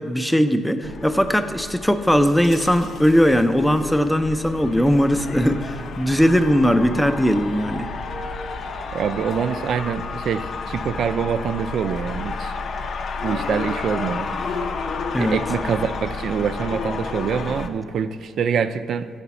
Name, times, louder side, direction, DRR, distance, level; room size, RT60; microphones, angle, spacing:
voice 1, 0.0-7.9 15.1-15.4, equal, 5° left, 8 dB, 0.4 m, -19 dB
sound 1, 0.8-17.7, left 4 dB, 55° left, 0.5 m, -31 dB
voice 2, 8.9-12.6 13.2-14.3 15.2-19.1, right 7 dB, 65° right, 11 dB, 0.3 m, -25 dB
8.4 x 4.0 x 6.9 m, 2.4 s
cardioid pair, 90°, 0 cm